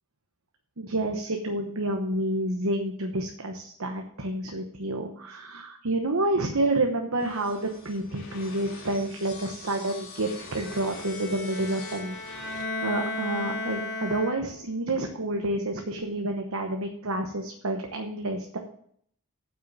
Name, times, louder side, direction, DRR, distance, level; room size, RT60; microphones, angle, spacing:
voice 1, 0.8-12.5 12.8-18.6, right 1 dB, 70° right, 3 dB, 1.0 m, -29 dB
sound 1, 7.2-12.6, left 4 dB, 60° left, 3.2 m, -45 dB
Bowed string instrument, 10.6-14.8, left 2 dB, 30° left, 1.9 m, -35 dB
8.1 x 6.2 x 7.5 m, 0.64 s
head